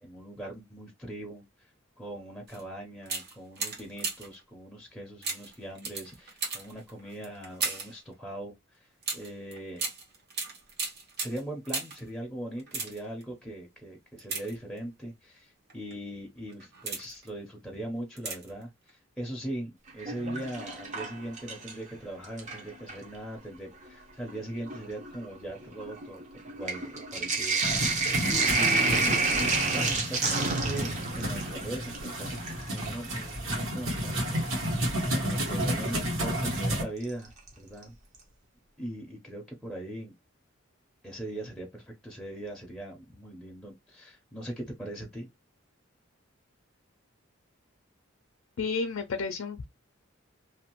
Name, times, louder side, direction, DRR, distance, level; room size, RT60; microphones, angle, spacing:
voice 1, 0.0-9.9 11.2-32.4 32.7-37.9 38.8-40.1 41.0-45.3, right 1 dB, ahead, 0.6 m, -40 dB
sound 1, 2.5-2.6 3.0-4.4 5.2-8.0 9.0-12.1 12.6-13.2 14.2-15.0 15.7-15.9 16.5-17.3 18.2-18.6 18.9-19.0, right 4 dB, 55° right, 1.0 m, -36 dB
Sink (filling or washing), 19.9-21.9 22.2-23.1 23.9-24.0 24.2-33.4 35.1-35.2 37.0-37.5 37.8-37.9 38.1-38.2, right 3 dB, 35° right, 0.7 m, -30 dB
sound 2, 27.6-36.8, equal, 70° right, 1.4 m, -31 dB
voice 2, 48.6-49.6, left 4 dB, 70° left, 0.4 m, -31 dB
2.6 x 2.4 x 2.9 m
head